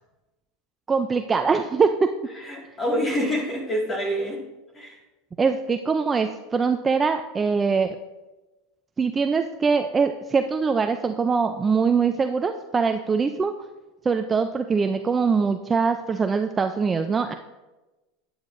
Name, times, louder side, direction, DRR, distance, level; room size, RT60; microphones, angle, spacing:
voice 1, 0.9-2.1 5.4-8.0 9.0-13.5 14.0-17.3, right 5 dB, 15° right, 7 dB, 0.4 m, -23 dB
voice 2, 2.3-4.5 4.7-5.0, equal, 15° left, -1 dB, 1.9 m, -27 dB
12.0 x 9.4 x 2.6 m, 1.1 s
supercardioid pair, 150°, 0 cm